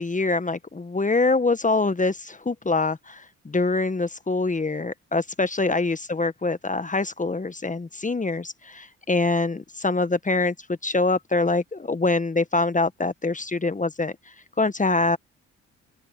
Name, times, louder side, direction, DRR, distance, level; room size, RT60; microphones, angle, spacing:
voice 1, 0.0-10.5 10.8-15.2, left 3 dB, 20° left, 1.5 m, -24 dB
open air
hypercardioid pair, 45°, 34 cm